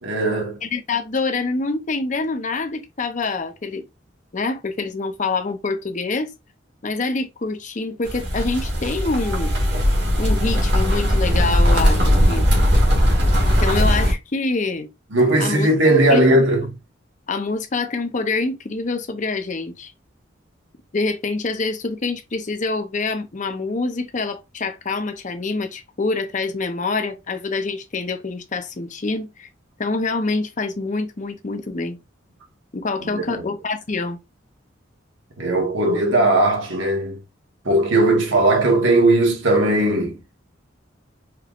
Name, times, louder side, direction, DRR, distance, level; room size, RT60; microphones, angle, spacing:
voice 1, 0.0-0.6 15.1-16.7 33.1-33.4 35.4-37.2 37.6-40.2, right 2 dB, 90° right, 1.2 m, -18 dB
voice 2, 0.6-3.8 4.3-6.3 6.8-9.5 10.2-12.5 13.4-14.9 15.4-15.7 16.1-16.5 17.3-19.9 20.9-29.5 29.8-32.0 32.7-34.2, left 3 dB, 40° left, 0.7 m, -26 dB
sound 1, 8.1-14.1, equal, 60° right, 1.6 m, -18 dB
4.5 x 3.1 x 2.4 m
head